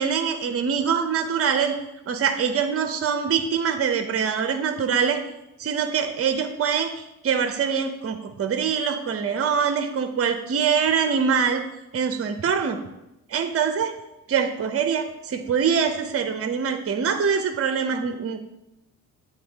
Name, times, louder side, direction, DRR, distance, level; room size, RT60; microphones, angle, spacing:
voice 1, 0.0-1.8 2.1-5.2 5.6-11.6 11.9-12.8 13.3-13.9 14.3-18.4, right 6 dB, 35° right, 7 dB, 0.7 m, -24 dB
8.6 x 4.0 x 3.5 m, 0.91 s
hypercardioid pair, 45°, 42 cm